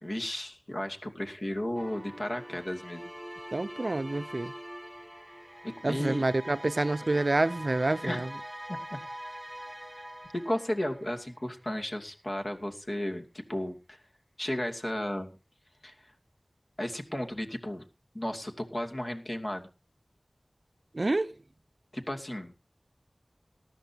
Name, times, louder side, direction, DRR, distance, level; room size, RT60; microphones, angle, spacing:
voice 1, 0.0-3.1 5.8-6.2 8.0-8.2 8.7-9.0 10.3-13.2 13.5-14.0 14.4-15.3 15.8-16.1 16.8-17.8 18.1-19.7 21.9-22.5, left 1 dB, 45° left, 2.5 m, -34 dB
sound 1, 1.8-11.5, equal, 10° right, 1.9 m, -44 dB
voice 2, 3.5-4.5 5.8-8.3 20.9-21.3, right 2 dB, 60° right, 0.6 m, -28 dB
18.5 x 13.0 x 2.9 m
wide cardioid pair, 40°, 0 cm